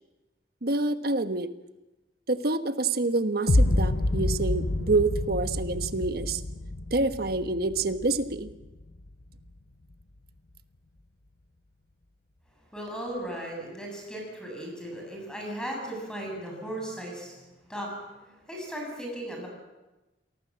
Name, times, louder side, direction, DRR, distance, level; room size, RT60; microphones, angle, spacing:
voice 1, 0.6-1.5 2.3-6.4 6.9-8.5, right 3 dB, 60° right, 10 dB, 1.3 m, -27 dB
sound 1, 3.5-9.5, left 1 dB, 70° left, 0.9 m, -28 dB
voice 2, 12.7-19.5, right 1 dB, 5° left, 0 dB, 7.7 m, -37 dB
27.5 x 19.0 x 7.6 m, 1.1 s
head